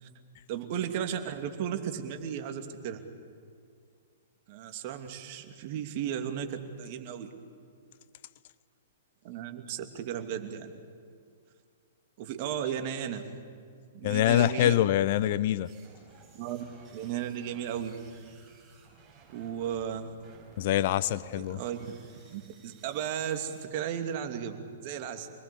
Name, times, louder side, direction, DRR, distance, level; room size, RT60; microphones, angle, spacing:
voice 1, 0.5-3.0 4.5-7.3 9.2-10.7 12.2-13.2 13.9-14.8 16.3-16.6 16.9-17.9 19.3-20.1 21.3-21.9 22.3-25.3, right 9 dB, 45° right, 6 dB, 2.7 m, -35 dB
voice 2, 14.0-15.7 20.6-21.6, left 12 dB, 50° left, 18 dB, 0.6 m, -25 dB
sound 1, 15.6-23.7, right 4 dB, 20° right, 7.2 m, -57 dB
27.5 x 20.5 x 8.5 m, 2.2 s
figure-of-eight pair, 115°, 0 cm